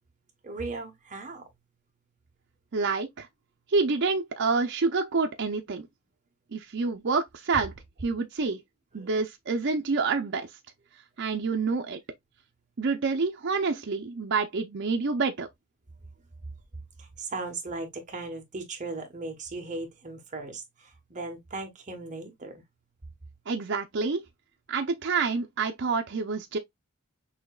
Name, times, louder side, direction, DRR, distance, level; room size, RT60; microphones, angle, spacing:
voice 1, 0.4-1.5 9.0-9.1 16.4-16.5 17.0-22.6, right 3 dB, 35° right, 1.1 m, -37 dB
voice 2, 2.7-3.3 3.7-5.9 6.5-7.7 8.0-8.6 8.9-10.5 11.2-12.0 12.8-15.5 23.5-24.2 24.7-26.6, right 4 dB, 55° right, 0.6 m, -27 dB
6.2 x 2.8 x 2.3 m
head